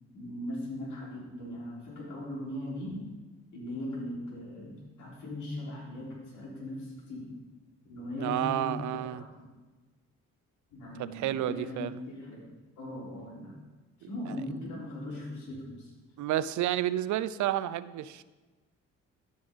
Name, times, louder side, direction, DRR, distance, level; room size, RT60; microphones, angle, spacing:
voice 1, 0.1-3.1 3.5-4.7 5.0-7.3 7.9-9.5 10.7-13.6 14.0-15.9, left 1 dB, 80° left, -4 dB, 3.9 m, -39 dB
voice 2, 8.2-9.2 11.0-12.0 16.2-18.2, right 12 dB, 75° right, 16 dB, 0.5 m, -30 dB
13.5 x 5.5 x 5.2 m, 1.3 s
cardioid pair, 90°, 30 cm